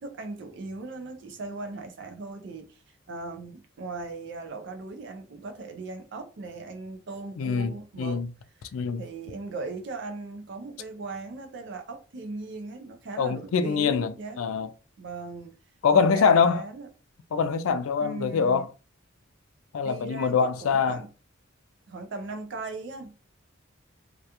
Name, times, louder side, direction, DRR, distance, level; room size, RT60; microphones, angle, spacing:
voice 1, 0.0-2.8 3.1-8.2 8.6-8.7 9.0-14.4 15.0-15.5 15.9-16.9 18.0-18.7 19.8-21.1 21.9-23.1, right 3 dB, 60° right, 0.4 m, -38 dB
voice 2, 7.4-7.7 8.0-8.3 8.7-9.0 13.2-14.7 15.8-16.6 17.3-18.7 19.7-21.0, left 6 dB, 85° left, 0.4 m, -24 dB
2.3 x 2.2 x 2.8 m
head